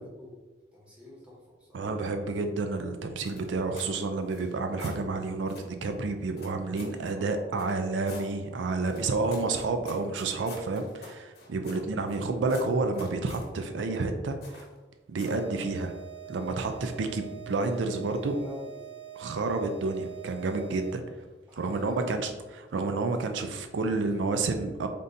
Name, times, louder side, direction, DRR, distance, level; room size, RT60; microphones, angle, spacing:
voice 1, 0.7-1.9 7.1-7.7 11.5-12.1 18.3-18.8 21.5-22.2 23.8-24.4, left 1 dB, 5° right, -7 dB, 1.2 m, -47 dB
voice 2, 1.7-14.6 15.1-15.9 16.3-18.4 19.2-21.0 21.6-24.9, right 3 dB, 85° right, 6 dB, 0.4 m, -30 dB
sound 1, 3.2-4.0 4.3-5.0 5.5-5.7 6.4-7.0 7.6-8.3 8.9-12.2 12.5-13.5 14.4-14.8 15.2-15.5, left 2 dB, 55° left, 0.9 m, -47 dB
sound 2, 15.2-21.2, right 12 dB, 35° right, 0.6 m, -45 dB
3.6 x 2.7 x 3.9 m, 1.2 s
head